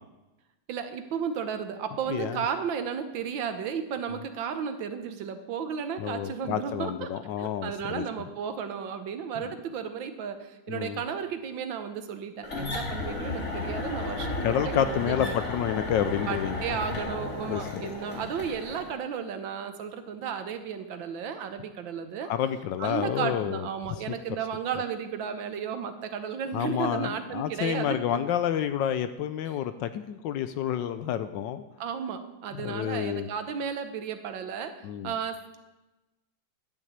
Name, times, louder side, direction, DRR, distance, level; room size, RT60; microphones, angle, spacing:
voice 1, 0.7-7.1 7.4-14.4 14.6-15.4 16.3-22.3 22.8-28.2 31.8-34.7 35.0-35.6, right 7 dB, 70° right, 8 dB, 1.6 m, -34 dB
voice 2, 2.1-2.5 6.0-8.0 9.4-9.5 10.7-11.0 14.4-16.6 17.5-17.9 22.2-23.7 24.1-24.2 26.5-31.6 32.5-33.3 34.8-35.1, left 10 dB, 75° left, 11 dB, 1.2 m, -29 dB
sound 1, 12.4-18.9, left 2 dB, 45° left, 2.1 m, -34 dB
10.5 x 6.2 x 8.1 m, 1.1 s
omnidirectional pair, 2.2 m